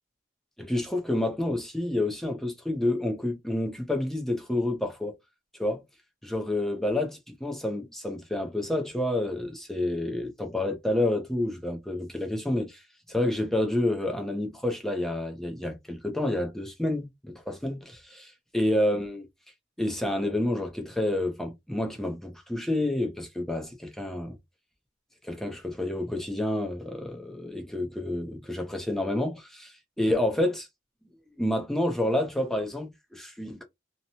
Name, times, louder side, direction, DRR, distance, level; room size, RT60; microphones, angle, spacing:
voice 1, 0.6-5.1 5.6-5.8 6.2-12.8 13.1-19.3 19.8-24.4 25.2-30.7 31.4-33.6, left 1 dB, ahead, 0.6 m, -29 dB
2.9 x 2.2 x 2.7 m
head